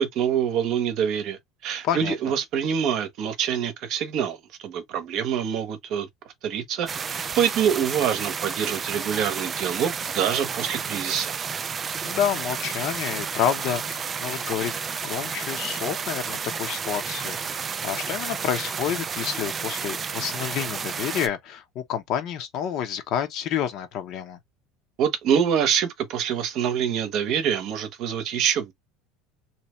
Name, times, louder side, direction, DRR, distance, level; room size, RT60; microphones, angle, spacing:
voice 1, 0.0-4.4 4.6-6.1 6.4-11.3 25.0-28.7, right 8 dB, 45° right, 0.9 m, -25 dB
voice 2, 1.8-2.1 12.0-14.8 15.0-24.4, left 9 dB, 45° left, 0.9 m, -29 dB
sound 1, 6.9-21.3, right 6 dB, 20° right, 0.3 m, -31 dB
3.4 x 2.8 x 3.1 m
cardioid pair, 165°, 0 cm